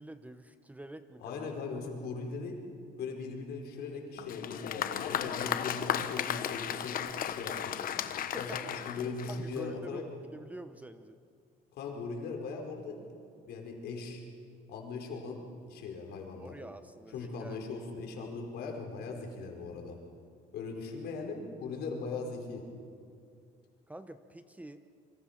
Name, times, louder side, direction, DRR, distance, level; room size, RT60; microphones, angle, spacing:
voice 1, 0.0-1.5 8.2-8.6 9.3-10.0 10.3-11.2 16.4-17.6 23.9-24.8, right 1 dB, 10° right, 10 dB, 1.0 m, -47 dB
voice 2, 1.2-2.6 3.0-7.9 8.4-10.0 11.7-13.0 13.4-14.2 14.7-16.5 17.1-20.0 20.5-22.6, left 4 dB, 75° left, 1 dB, 4.9 m, -39 dB
Applause, 4.2-9.7, left 9 dB, 55° left, 1.2 m, -35 dB
27.5 x 24.0 x 5.9 m, 2.3 s
cardioid pair, 110°, 17 cm